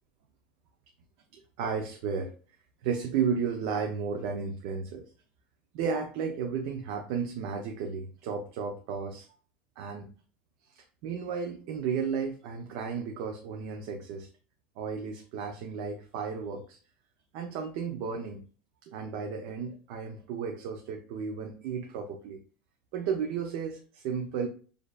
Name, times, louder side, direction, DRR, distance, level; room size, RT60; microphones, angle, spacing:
voice 1, 1.3-2.3 2.8-5.1 5.7-9.3 9.8-10.1 10.7-14.3 14.8-16.8 17.3-18.4 18.8-22.4 22.9-24.5, right 6 dB, 65° right, 3 dB, 0.7 m, -33 dB
6.6 x 2.7 x 2.4 m, 0.40 s
supercardioid pair, 150°, 3 cm